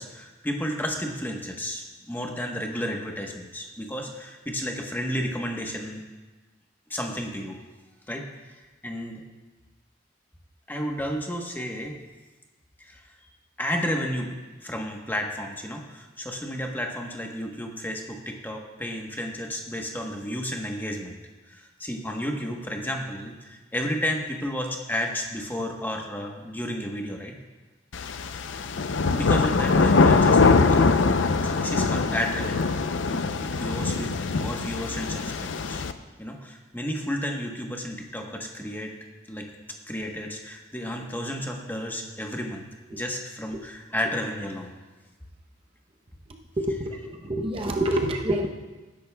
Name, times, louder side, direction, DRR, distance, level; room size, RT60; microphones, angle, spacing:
voice 1, 0.0-6.0 6.9-7.6 8.1-8.3 8.8-9.2 10.7-12.0 12.8-13.1 13.6-21.2 21.5-27.4 29.1-31.1 31.4-32.7 33.1-35.8 36.2-38.9 39.3-39.5 39.9-42.6 42.9-44.7 46.7-47.0 47.9-48.1, equal, 10° left, 1 dB, 1.1 m, -32 dB
sound 1, 27.9-35.9, left 4 dB, 85° left, 0.6 m, -22 dB
voice 2, 46.6-47.0 47.3-48.5, right 1 dB, 30° right, 2 dB, 0.7 m, -26 dB
20.0 x 10.5 x 2.3 m, 1.2 s
head